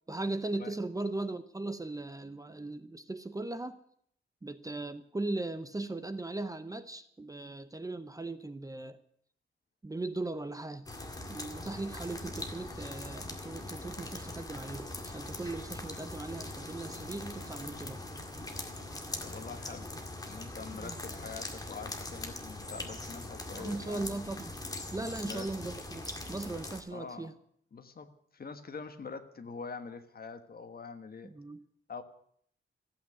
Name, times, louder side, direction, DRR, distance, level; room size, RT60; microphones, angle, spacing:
voice 1, 0.1-3.8 4.4-9.0 9.8-10.8 11.3-18.0 20.7-20.9 23.5-24.5 24.9-27.3 31.2-31.6, right 2 dB, 15° right, 12 dB, 0.7 m, -38 dB
sound 1, 10.9-26.8, left 2 dB, 20° left, 2.0 m, -42 dB
voice 2, 19.2-19.9 20.2-24.2 25.2-25.5 26.9-27.3 27.7-31.3 31.9-32.0, left 5 dB, 50° left, 9 dB, 1.4 m, -44 dB
15.0 x 8.7 x 9.5 m, 0.65 s
wide cardioid pair, 145°, 20 cm